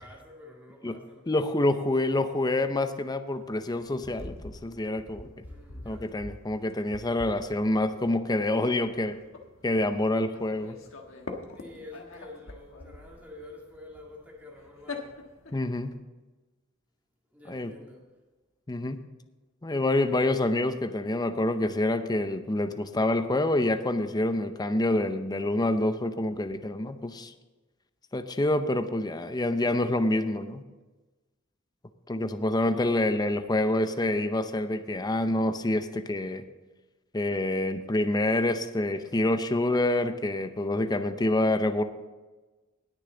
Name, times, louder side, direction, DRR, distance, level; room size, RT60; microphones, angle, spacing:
voice 1, 0.0-1.4 5.5-6.1 11.5-15.2 17.3-18.1 32.7-33.1, left 1 dB, 10° right, -2 dB, 2.2 m, -48 dB
voice 2, 1.3-5.3 5.9-9.2 9.6-10.8 15.5-16.0 17.5-17.7 18.7-19.0 19.6-27.3 28.1-30.6 32.1-36.4 37.1-41.8, left 1 dB, 20° left, 9 dB, 0.6 m, -27 dB
sound 1, 3.3-15.9, left 2 dB, 70° left, 1.4 m, -45 dB
19.5 x 6.7 x 3.9 m, 1.2 s
head